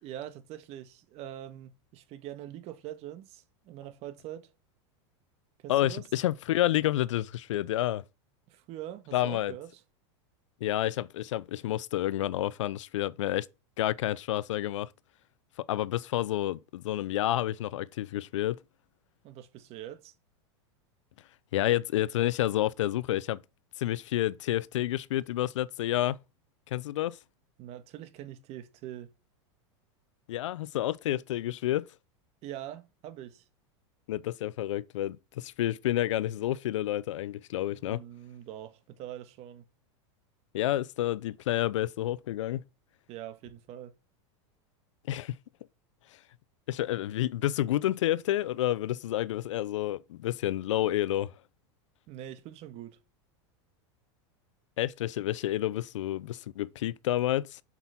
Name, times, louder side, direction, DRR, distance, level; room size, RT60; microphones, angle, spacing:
voice 1, 0.0-4.5 5.6-6.1 8.5-9.7 19.2-20.1 27.6-29.1 32.4-33.4 37.7-39.6 43.1-43.9 52.1-53.0, right 12 dB, 45° right, 1.6 m, -43 dB
voice 2, 5.7-8.0 9.1-9.5 10.6-13.5 13.8-14.9 15.7-18.6 21.5-23.4 23.8-26.2 26.7-27.2 30.3-31.9 34.1-38.0 40.5-42.6 45.1-45.3 46.7-51.3 54.8-57.6, left 14 dB, 85° left, 0.6 m, -29 dB
7.9 x 6.1 x 5.7 m
supercardioid pair, 135°, 15 cm